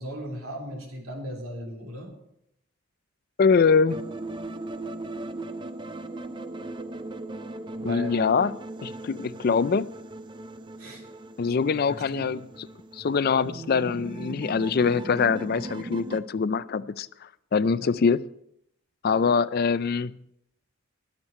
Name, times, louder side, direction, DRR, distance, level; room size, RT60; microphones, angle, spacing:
voice 1, 0.0-2.1 7.8-8.1 10.8-11.0 12.1-12.4 17.8-17.9, equal, 80° right, 1 dB, 3.2 m, -36 dB
voice 2, 3.4-4.0 7.8-9.9 11.4-12.4 12.9-18.2 19.0-20.2, left 5 dB, 45° left, 16 dB, 0.3 m, -24 dB
sound 1, 3.9-16.2, right 2 dB, 20° right, 0.4 m, -38 dB
21.0 x 7.4 x 4.3 m, 0.77 s
head